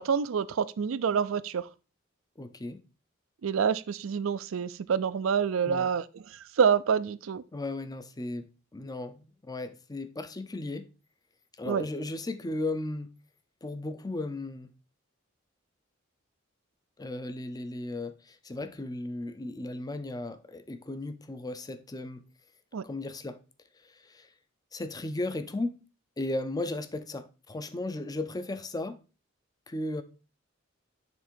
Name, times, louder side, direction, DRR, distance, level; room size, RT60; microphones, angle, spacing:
voice 1, 0.0-1.7 3.4-7.4 11.6-11.9 22.7-22.8, right 7 dB, 70° right, 0.4 m, -27 dB
voice 2, 2.4-2.8 5.6-5.9 7.5-10.9 11.6-13.1 13.6-14.7 17.0-22.2 22.8-23.4 23.8-24.3 24.7-25.8 26.2-29.0 29.7-30.0, left 2 dB, 20° left, 0.6 m, -35 dB
7.1 x 3.6 x 4.3 m
head